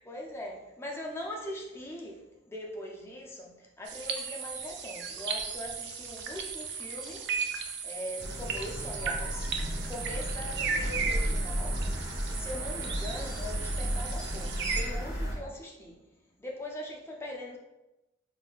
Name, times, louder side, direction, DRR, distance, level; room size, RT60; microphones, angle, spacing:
voice 1, 0.0-2.2 2.5-7.3 7.8-16.0 16.4-17.6, left 1 dB, 10° left, -1 dB, 0.4 m, -41 dB
sound 1, 3.9-14.8, right 5 dB, 55° right, 0.4 m, -36 dB
sound 2, 8.2-15.3, equal, 15° right, 0.8 m, -34 dB
4.0 x 2.6 x 2.2 m, 0.98 s
head